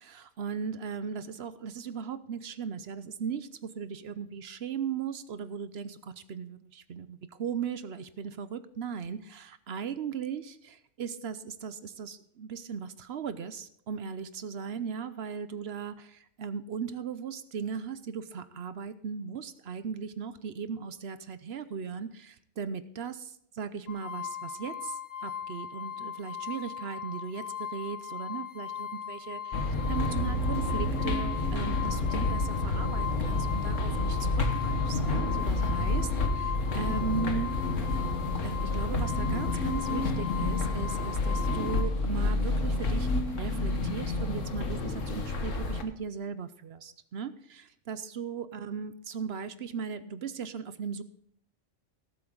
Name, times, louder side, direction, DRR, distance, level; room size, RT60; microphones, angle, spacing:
voice 1, 0.0-37.5 38.4-51.0, right 6 dB, 60° right, 13 dB, 0.9 m, -38 dB
sound 1, 23.9-41.9, left 8 dB, 50° left, 1.5 m, -38 dB
sound 2, 29.5-45.8, left 2 dB, 85° left, 1.6 m, -29 dB
17.5 x 7.8 x 3.8 m, 0.69 s
omnidirectional pair, 1.3 m